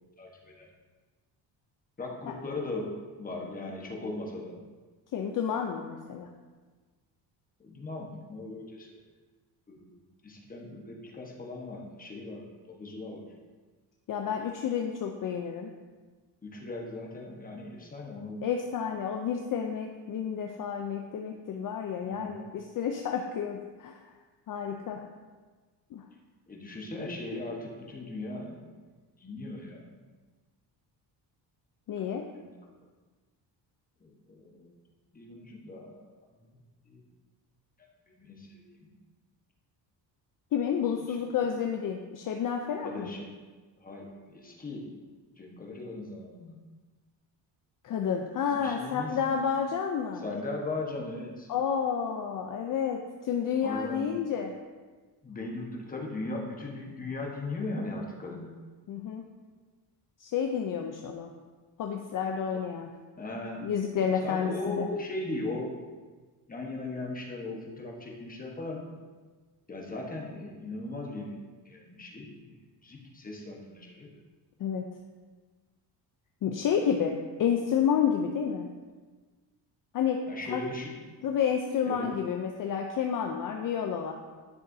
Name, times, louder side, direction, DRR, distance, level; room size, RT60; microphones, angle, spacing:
voice 1, 0.2-0.7 2.0-4.6 7.6-9.0 9.7-13.3 16.4-18.4 22.0-22.4 26.5-28.7 29.2-29.9 32.3-32.5 34.0-34.7 35.1-36.1 36.3-36.5 36.8-37.0 37.8-37.9 38.1-38.9 41.1-41.2 42.8-43.3 43.8-44.9 45.4-46.6 48.5-49.4 50.2-51.5 53.6-54.1 55.2-58.5 62.5-62.6 63.2-63.7 64.2-65.7 66.5-68.9 69.7-71.4 71.6-72.5 72.8-74.1 80.3-80.9 81.9-82.1, left 2 dB, 20° left, -1 dB, 1.2 m, -38 dB
voice 2, 5.1-6.3 14.1-15.7 18.4-24.0 24.5-25.0 25.9-26.0 31.9-32.3 40.5-43.1 47.8-50.2 51.5-54.5 58.9-59.2 60.2-61.3 61.8-62.9 63.6-64.9 74.6-74.9 76.4-78.7 79.9-80.6 81.2-84.1, left 7 dB, 50° left, 3 dB, 0.6 m, -30 dB
10.5 x 6.4 x 2.7 m, 1.4 s
cardioid pair, 140°, 43 cm